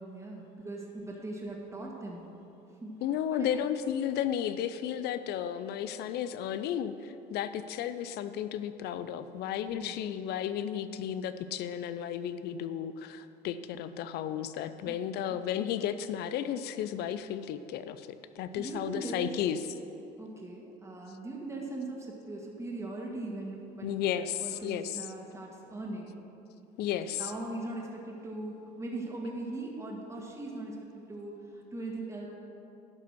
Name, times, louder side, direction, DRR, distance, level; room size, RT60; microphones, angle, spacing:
voice 1, 0.0-2.2 2.8-2.9 3.3-3.7 9.7-10.0 14.9-15.4 18.6-19.3 20.2-26.1 27.2-32.3, right 2 dB, 15° right, -2 dB, 1.9 m, -40 dB
voice 2, 3.0-19.6 23.8-25.1 26.8-27.3, left 10 dB, 65° left, 12 dB, 0.6 m, -33 dB
11.5 x 5.8 x 6.2 m, 2.8 s
supercardioid pair, 80°, 18 cm